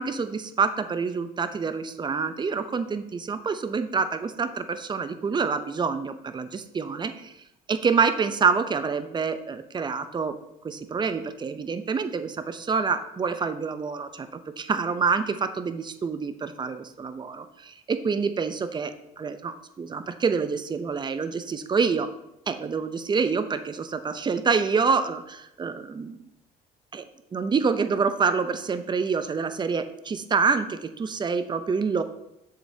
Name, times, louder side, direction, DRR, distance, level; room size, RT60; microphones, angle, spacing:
voice 1, 0.0-7.3 7.7-10.4 10.6-22.1 22.5-26.2 26.9-27.1 27.3-32.0, right 5 dB, 25° right, 10 dB, 0.5 m, -27 dB
7.4 x 6.7 x 2.7 m, 0.85 s
cardioid pair, 110°, 17 cm